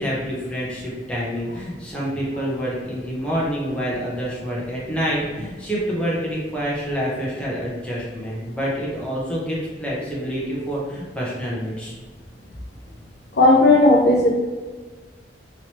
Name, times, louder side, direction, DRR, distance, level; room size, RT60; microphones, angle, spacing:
voice 1, 0.0-11.9, equal, 5° left, -6 dB, 0.8 m, -27 dB
voice 2, 13.4-14.3, left 2 dB, 65° left, -1 dB, 0.6 m, -14 dB
3.1 x 2.9 x 2.9 m, 1.3 s
head